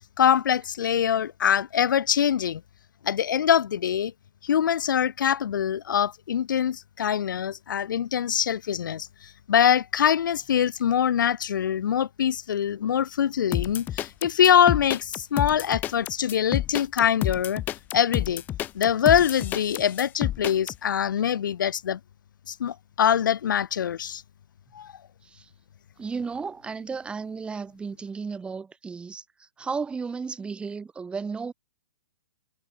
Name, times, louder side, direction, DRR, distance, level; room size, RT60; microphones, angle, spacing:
voice 1, 0.2-2.6 3.0-4.1 4.4-17.6 17.9-18.4 18.7-22.0 22.5-24.2 24.7-24.9, left 9 dB, 75° left, 0.4 m, -24 dB
sound 1, 13.5-20.8, left 12 dB, 15° left, 0.4 m, -29 dB
voice 2, 26.0-31.5, right 5 dB, 10° right, 3.2 m, -34 dB
hypercardioid pair, 140°, 11 cm